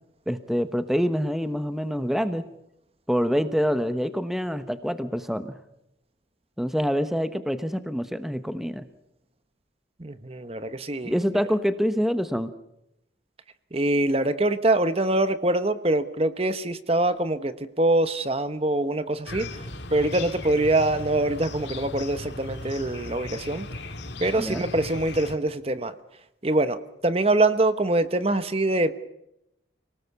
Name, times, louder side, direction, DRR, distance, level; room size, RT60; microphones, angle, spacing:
voice 1, 0.3-2.4 3.1-5.5 6.6-8.8 11.0-12.5 24.4-24.6, equal, ahead, 10 dB, 1.0 m, -26 dB
voice 2, 10.0-11.1 13.7-23.7 24.2-25.9 26.4-28.9, right 2 dB, 30° right, 11 dB, 1.0 m, -24 dB
sound 1, 19.3-25.4, left 2 dB, 65° left, 2.6 m, -37 dB
29.0 x 19.0 x 7.0 m, 0.84 s
head